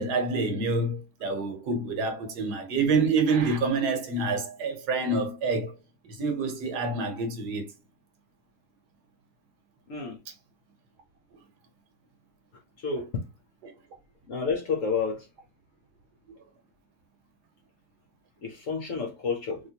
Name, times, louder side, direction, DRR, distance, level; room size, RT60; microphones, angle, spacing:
voice 1, 0.0-5.7 6.1-7.7 13.6-13.7, right 3 dB, 70° right, 1.3 m, -27 dB
voice 2, 14.3-15.3 18.4-19.6, left 5 dB, 60° left, 0.9 m, -30 dB
3.4 x 2.9 x 2.7 m
omnidirectional pair, 1.9 m